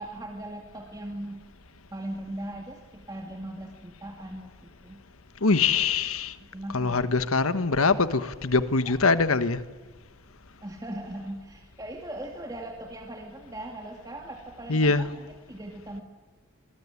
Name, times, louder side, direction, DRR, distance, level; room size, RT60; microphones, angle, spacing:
voice 1, 0.0-1.5 1.9-5.0 6.4-7.1 8.8-9.0 10.6-16.0, right 1 dB, 15° right, 0 dB, 2.4 m, -39 dB
voice 2, 5.4-6.3 6.7-9.6 14.7-15.1, left 4 dB, 85° left, 12 dB, 1.3 m, -23 dB
26.0 x 21.0 x 9.7 m, 1.4 s
head